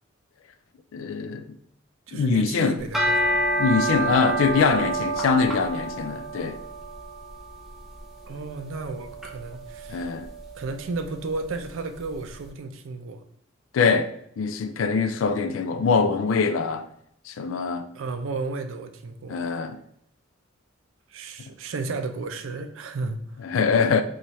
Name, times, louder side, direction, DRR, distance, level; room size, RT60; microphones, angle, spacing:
voice 1, 0.9-1.6 2.1-2.8 3.6-6.6 9.9-10.3 13.7-14.1 14.4-16.9 17.3-17.9 19.3-19.8 23.4-24.0, left 5 dB, 75° left, 0.3 m, -23 dB
voice 2, 2.1-3.4 8.2-10.1 10.5-13.2 17.9-19.4 21.1-23.5, right 3 dB, 75° right, 0.4 m, -33 dB
sound 1, 2.8-12.1, right 2 dB, ahead, 0.5 m, -29 dB
4.1 x 2.4 x 3.0 m
head